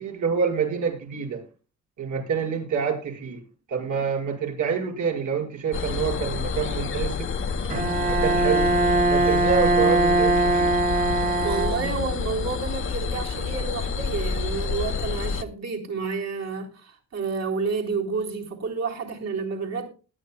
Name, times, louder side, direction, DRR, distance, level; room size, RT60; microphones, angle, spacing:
voice 1, 0.0-1.4 2.0-3.4 3.7-7.3 8.0-8.7 9.1-10.7, right 6 dB, 80° right, 5.4 m, -27 dB
sound 1, 5.7-15.4, left 5 dB, 45° left, 1.0 m, -29 dB
Bowed string instrument, 7.7-12.2, right 2 dB, 30° right, 2.0 m, -22 dB
voice 2, 11.4-19.9, right 4 dB, 60° right, 3.9 m, -30 dB
19.5 x 12.0 x 2.3 m
cardioid pair, 95°, 29 cm